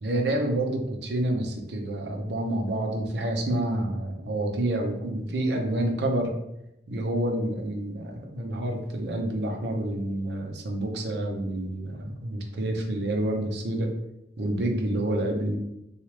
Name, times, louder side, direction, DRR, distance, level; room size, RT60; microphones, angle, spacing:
voice 1, 0.0-6.3 6.9-13.9 14.4-15.6, right 1 dB, 65° right, 2 dB, 0.6 m, -28 dB
3.1 x 2.4 x 3.1 m, 0.83 s
head